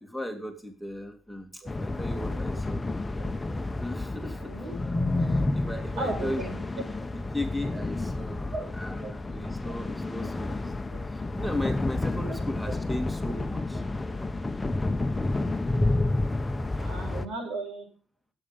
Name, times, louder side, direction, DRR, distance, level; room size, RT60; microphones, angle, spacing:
voice 1, 0.0-2.9 3.8-4.5 5.2-6.5 7.1-13.8, left 1 dB, ahead, 5 dB, 2.5 m, -36 dB
sound 1, 1.7-17.3, left 2 dB, 20° left, 1.0 m, -30 dB
voice 2, 4.4-4.7 6.0-6.7 8.5-8.7 9.0-9.1 9.6-9.7 14.1-14.2 16.7-17.9, right 2 dB, 85° right, 3 dB, 7.1 m, -35 dB
17.5 x 9.1 x 5.4 m, 0.36 s
cardioid pair, 90°, 0 cm